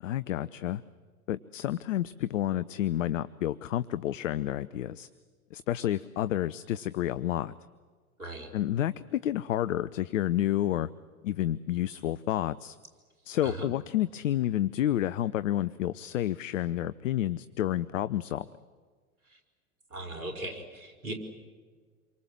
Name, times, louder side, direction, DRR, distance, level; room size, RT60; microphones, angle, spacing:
voice 1, 0.0-0.8 1.3-5.1 5.5-7.5 8.5-10.9 11.2-12.8 13.2-18.5, left 12 dB, 60° left, 16 dB, 0.8 m, -30 dB
voice 2, 8.2-8.5 13.4-13.7 19.3-19.4 19.9-21.1, right 1 dB, 80° right, 5 dB, 4.9 m, -38 dB
28.0 x 23.5 x 7.6 m, 1.5 s
figure-of-eight pair, 95°, 43 cm